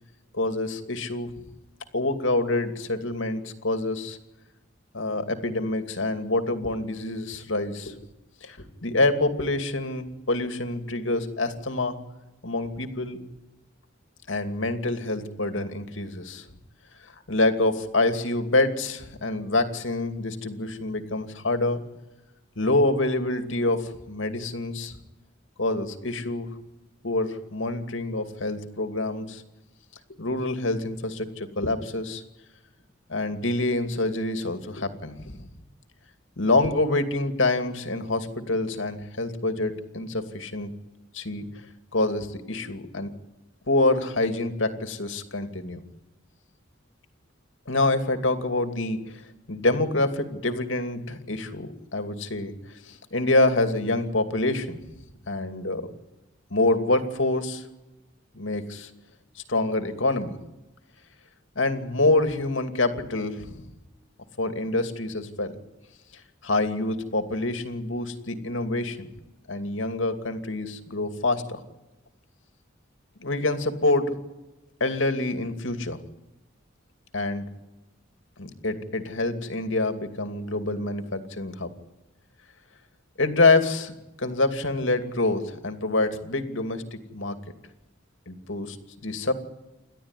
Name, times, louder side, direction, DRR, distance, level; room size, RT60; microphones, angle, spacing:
voice 1, 0.3-1.3 1.9-4.2 4.9-8.0 8.4-8.6 8.8-12.0 12.4-13.2 14.3-16.4 17.3-21.8 22.6-25.0 25.6-26.5 27.0-29.4 30.2-32.2 33.1-35.5 36.4-40.7 41.1-41.4 41.9-43.1 43.7-45.8 47.7-49.2 49.5-52.5 52.8-54.8 55.3-55.9 56.5-57.6 58.3-58.9 59.4-60.3 61.6-63.6 64.4-65.5 66.4-69.1 69.5-71.6 73.2-74.1 74.8-76.0 77.1-77.5 78.4-81.7 83.2-83.9 84.2-87.4 88.3-88.8 89.0-89.3, left 2 dB, 75° left, 8 dB, 2.6 m, -26 dB
29.0 x 12.5 x 9.9 m, 1.0 s
head